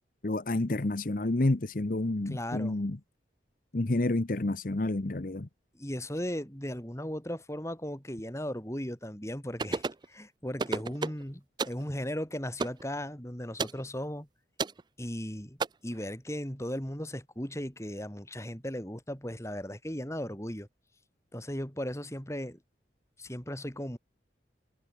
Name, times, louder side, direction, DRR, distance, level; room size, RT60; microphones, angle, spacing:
voice 1, 0.2-3.0 3.7-5.5, left 2 dB, 50° left, 0.9 m, -29 dB
voice 2, 2.3-2.8 5.7-14.3 15.0-15.6 15.8-20.7 21.3-22.6 23.2-24.0, equal, 15° left, 4.6 m, -37 dB
sound 1, 9.6-10.0 10.6-11.2 11.6-11.8 12.6-12.8 13.6-13.8 14.6-14.8 15.6-15.7, right 4 dB, 25° right, 0.4 m, -31 dB
head